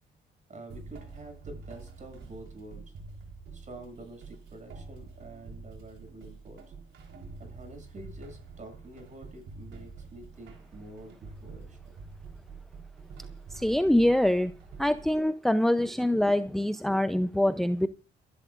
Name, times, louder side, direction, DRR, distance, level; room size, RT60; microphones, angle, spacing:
voice 1, 0.5-2.9 3.5-6.6 7.4-11.8, right 1 dB, 40° right, 5 dB, 7.4 m, -47 dB
sound 1, 0.7-15.2, right 4 dB, 75° right, 4.1 m, -47 dB
voice 2, 13.5-14.5 14.8-17.9, left 1 dB, ahead, 11 dB, 0.6 m, -24 dB
30.0 x 11.5 x 2.5 m, 0.36 s
cardioid pair, 90°, 20 cm